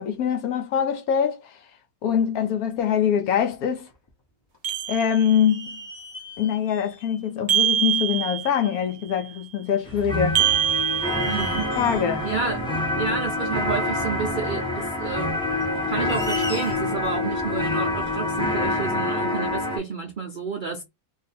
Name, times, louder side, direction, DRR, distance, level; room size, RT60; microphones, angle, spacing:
voice 1, 0.0-1.6 2.0-3.9 4.9-5.8 6.4-10.4 11.8-12.3, left 8 dB, 70° left, 1.0 m, -24 dB
sound 1, 2.9-3.0 3.5-4.2 4.5-4.6 5.5-7.3 8.3-8.4 10.3-10.5 11.0-12.1 13.9-14.0 15.6-17.1, left 1 dB, 35° left, 0.4 m, -39 dB
sound 2, 4.6-5.6 7.5-8.8 10.3-11.9, right 10 dB, 65° right, 0.9 m, -25 dB
sound 3, 9.8-19.8, left 2 dB, 5° left, 0.9 m, -26 dB
voice 2, 11.2-11.7 12.2-12.6 12.9-15.3 15.9-20.8, right 5 dB, 85° right, 0.4 m, -30 dB
2.6 x 2.4 x 4.1 m
omnidirectional pair, 1.7 m